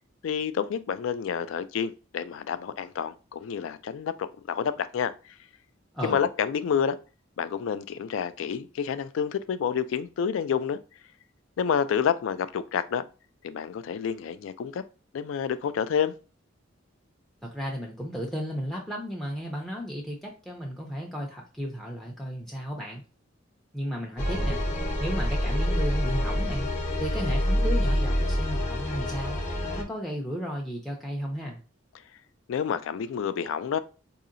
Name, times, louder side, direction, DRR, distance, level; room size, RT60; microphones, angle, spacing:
voice 1, 0.2-5.1 6.0-7.0 7.4-10.8 11.6-13.0 13.4-14.8 15.1-16.1 32.5-33.8, left 7 dB, 70° left, 0.3 m, -29 dB
voice 2, 17.4-23.0 23.7-24.6 25.0-26.7 27.0-29.4 29.7-31.6, equal, ahead, 0.4 m, -34 dB
sound 1, 24.2-29.8, equal, 35° left, 0.7 m, -27 dB
4.0 x 2.8 x 2.5 m
head